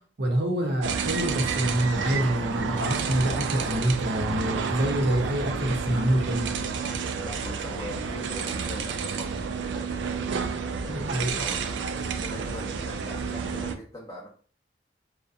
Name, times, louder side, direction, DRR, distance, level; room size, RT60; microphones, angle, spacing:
voice 1, 0.2-6.5 10.9-11.4, right 1 dB, 65° right, 0.7 m, -26 dB
sound 1, 0.8-13.7, right 5 dB, 80° right, 0.3 m, -30 dB
voice 2, 7.2-10.2 10.8-11.6 12.2-14.3, left 1 dB, 20° left, 0.5 m, -41 dB
2.6 x 2.1 x 2.4 m
head